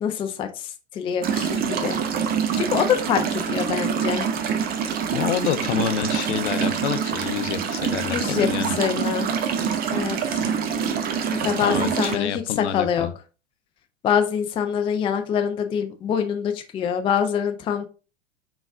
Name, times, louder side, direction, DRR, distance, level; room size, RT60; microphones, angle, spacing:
voice 1, 0.0-2.0 2.6-4.2 8.1-8.5 8.8-9.3 9.9-10.2 11.4-13.1 14.0-17.9, left 8 dB, 15° left, 7 dB, 0.4 m, -25 dB
sound 1, 1.2-12.2, right 7 dB, 25° right, 0.7 m, -25 dB
voice 2, 5.1-8.8 11.4-13.1, left 9 dB, 70° left, 12 dB, 0.6 m, -28 dB
4.8 x 4.0 x 2.4 m, 0.34 s
hypercardioid pair, 95°, 36 cm